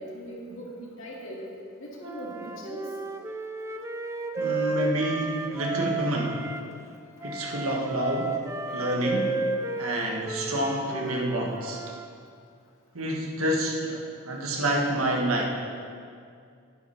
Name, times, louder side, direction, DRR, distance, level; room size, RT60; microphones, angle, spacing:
voice 1, 0.0-2.9, equal, 65° left, -3 dB, 2.3 m, -40 dB
Wind instrument woodwind instrument, 2.0-6.6 7.2-12.1, right 3 dB, 15° right, 0.4 m, -33 dB
voice 2, 4.4-6.5 7.2-9.4 9.8-11.8 12.9-15.5, right 1 dB, 75° right, 0 dB, 1.6 m, -28 dB
11.5 x 9.9 x 4.5 m, 2.3 s
head